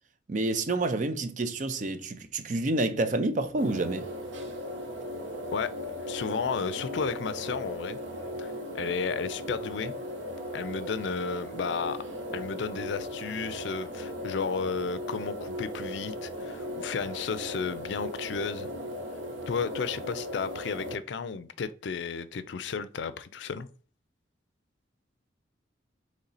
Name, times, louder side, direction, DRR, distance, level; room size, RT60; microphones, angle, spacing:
voice 1, 0.3-4.1, right 2 dB, 45° right, 0.5 m, -28 dB
sound 1, 3.6-20.9, equal, 85° right, 0.9 m, -37 dB
voice 2, 6.1-8.0 8.4-9.9 10.5-12.0 12.3-18.7 19.5-23.7, left 5 dB, 70° left, 0.4 m, -33 dB
4.2 x 3.2 x 3.9 m
head